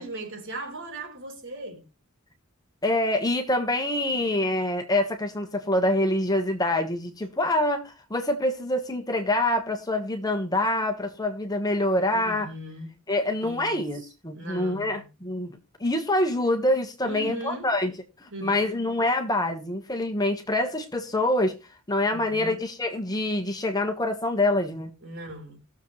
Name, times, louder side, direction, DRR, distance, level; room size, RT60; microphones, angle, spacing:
voice 1, 0.0-1.8 7.2-7.3 12.1-12.9 13.4-15.0 17.0-17.7 18.3-18.8 22.1-22.6 25.0-25.6, right 1 dB, 55° right, 3.8 m, -38 dB
voice 2, 2.8-12.5 13.1-17.9 18.2-21.5 21.9-24.9, left 1 dB, 15° left, 1.4 m, -26 dB
20.0 x 7.2 x 3.2 m
head